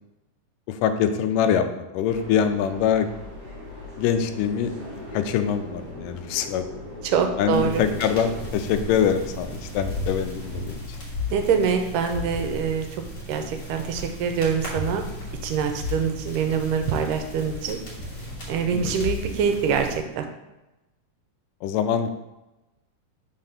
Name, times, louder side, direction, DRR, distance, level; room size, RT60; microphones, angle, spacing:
voice 1, 0.7-3.1 4.0-4.7 5.1-6.7 7.4-10.8 18.7-18.8 21.6-22.1, left 8 dB, 85° left, 8 dB, 2.1 m, -24 dB
sound 1, 2.1-10.8, left 1 dB, 50° right, 2.2 m, -39 dB
voice 2, 7.0-7.8 11.3-12.9 13.3-15.0 15.4-17.8 18.5-20.3, right 6 dB, 80° right, 6 dB, 2.2 m, -24 dB
sound 2, 7.5-20.0, left 2 dB, 40° left, 2.3 m, -35 dB
5.3 x 4.1 x 5.6 m, 1.0 s
omnidirectional pair, 3.8 m